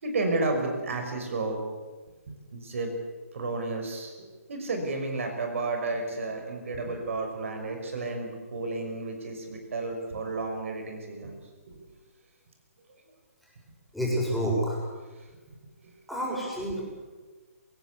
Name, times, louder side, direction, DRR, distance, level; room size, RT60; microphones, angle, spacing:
voice 1, 0.0-1.6 2.3-2.9 3.3-11.4 11.7-11.8, right 2 dB, 60° right, 4 dB, 5.7 m, -32 dB
voice 2, 13.9-14.8 16.1-16.8, equal, ahead, -5 dB, 6.9 m, -28 dB
27.5 x 17.0 x 8.3 m, 1.3 s
figure-of-eight pair, 140°, 8 cm